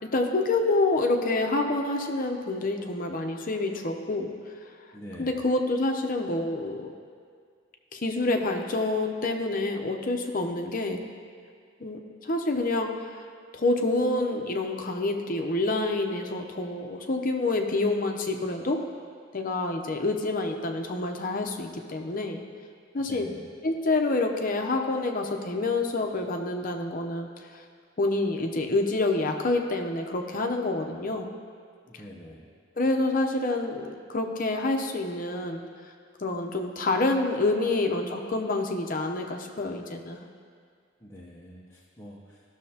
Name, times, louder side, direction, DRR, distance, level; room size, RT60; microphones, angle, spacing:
voice 1, 0.0-4.3 5.2-6.9 7.9-11.0 11.8-13.2 13.5-18.8 19.3-22.4 22.9-23.3 23.6-27.3 28.0-31.3 32.8-35.6 36.2-40.2, left 2 dB, 45° left, 3 dB, 0.8 m, -27 dB
voice 2, 4.9-5.4 23.1-23.5 31.9-32.5 41.0-42.4, equal, 15° left, -6 dB, 0.8 m, -45 dB
15.5 x 6.4 x 2.8 m, 2.1 s
head